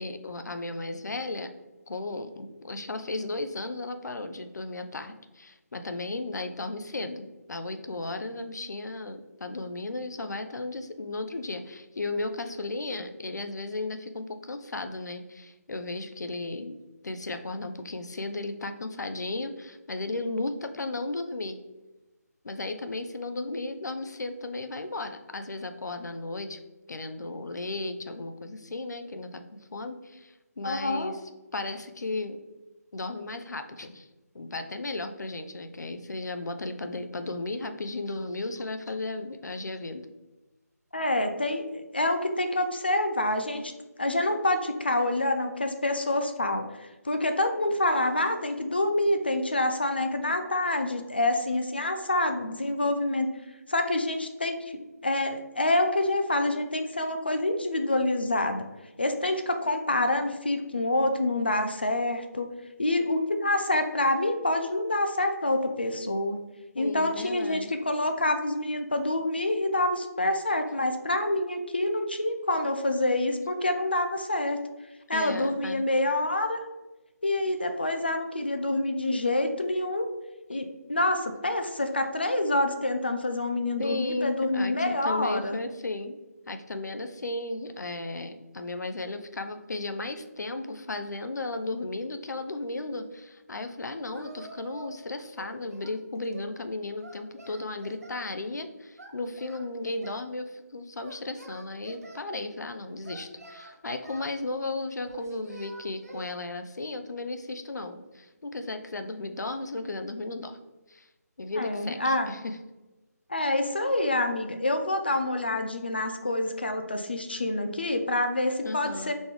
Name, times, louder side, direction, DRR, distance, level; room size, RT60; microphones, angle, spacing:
voice 1, 0.0-1.5 1.9-16.8 17.0-21.6 22.4-26.6 26.9-29.4 29.7-31.2 31.5-32.4 32.9-34.1 34.3-40.1 66.7-67.7 75.1-75.8 80.5-80.6 83.8-86.2 86.5-110.6 110.9-111.1 111.4-112.6 118.6-119.1, left 2 dB, 90° left, 8 dB, 0.5 m, -35 dB
voice 2, 30.6-31.1 40.9-43.7 44.0-53.3 53.7-58.7 59.0-62.5 62.8-66.4 66.8-74.6 75.1-76.6 77.2-80.1 80.5-85.6 111.6-112.3 113.3-119.1, left 1 dB, 35° left, 7 dB, 0.3 m, -27 dB
Singing, 94.1-95.0 95.3-96.6 97.0-98.3 99.0-100.3 101.0-102.2 103.0-104.3 105.1-106.4, right 2 dB, 65° right, 0.7 m, -47 dB
4.1 x 3.1 x 3.4 m, 1.1 s
figure-of-eight pair, 180°, 9 cm